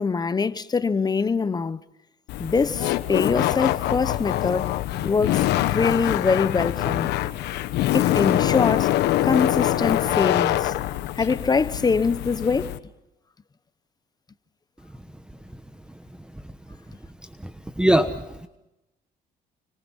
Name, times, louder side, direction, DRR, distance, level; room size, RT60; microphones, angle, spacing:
voice 1, 0.0-1.8 2.4-4.7 5.0-7.1 7.9-8.9 9.2-10.7 11.1-12.8, left 5 dB, 25° left, 1.1 m, -23 dB
Laughter, 2.3-12.8, left 14 dB, 80° left, 1.3 m, -24 dB
voice 2, 17.8-18.5, right 1 dB, 5° right, 1.2 m, -21 dB
29.5 x 25.5 x 5.7 m
cardioid pair, 110°, 17 cm